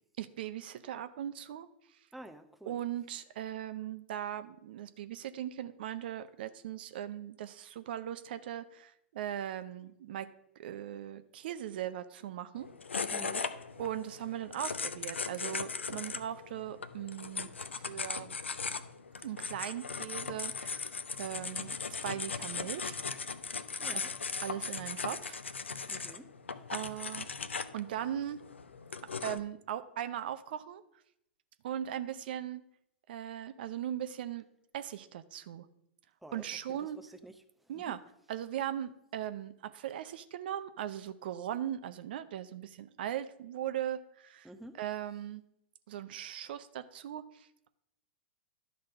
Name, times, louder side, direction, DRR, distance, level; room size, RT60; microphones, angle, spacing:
voice 1, 0.2-1.7 2.7-10.3 10.6-12.7 13.0-13.1 13.8-17.6 17.9-18.4 19.2-21.8 22.0-23.0 23.9-24.1 24.4-25.4 25.9-26.1 26.7-27.3 27.7-28.4 29.2-30.8 31.6-32.6 33.1-34.4 34.7-35.7 36.3-37.0 37.7-38.0 38.3-44.5 44.8-45.4 45.9-47.7, right 11 dB, 55° right, 11 dB, 0.6 m, -39 dB
voice 2, 2.1-2.8 13.1-13.5 23.8-24.1 25.9-26.3 36.2-37.4 37.7-37.9 44.4-44.8, right 1 dB, ahead, 7 dB, 0.7 m, -49 dB
sound 1, 12.6-29.4, left 5 dB, 75° left, 0.6 m, -38 dB
11.5 x 4.0 x 6.5 m, 0.76 s
figure-of-eight pair, 100°, 6 cm